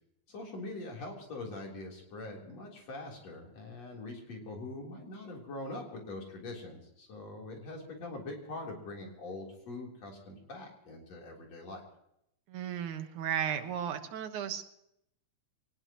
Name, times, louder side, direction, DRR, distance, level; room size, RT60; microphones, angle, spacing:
voice 1, 0.3-11.8, left 2 dB, 60° left, 0 dB, 4.9 m, -43 dB
voice 2, 12.5-14.6, right 9 dB, 80° right, 7 dB, 2.8 m, -34 dB
23.5 x 19.5 x 3.1 m, 0.77 s
omnidirectional pair, 3.4 m